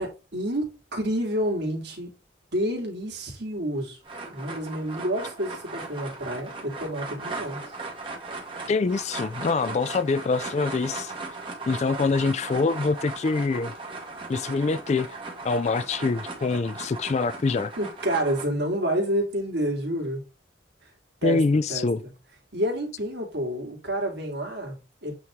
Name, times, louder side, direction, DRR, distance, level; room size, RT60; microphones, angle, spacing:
voice 1, 0.0-2.1 2.5-4.0 4.3-7.6 17.8-20.2 20.8-20.9 21.2-21.4 21.7-21.9 22.5-25.1, right 1 dB, 60° right, 2.3 m, -29 dB
sound 1, 4.0-18.4, right 3 dB, 25° right, 1.7 m, -38 dB
voice 2, 8.7-11.1 11.7-13.7 14.3-15.1 15.4-17.7 21.2-22.0, left 4 dB, 35° left, 0.3 m, -25 dB
8.5 x 3.1 x 3.6 m
head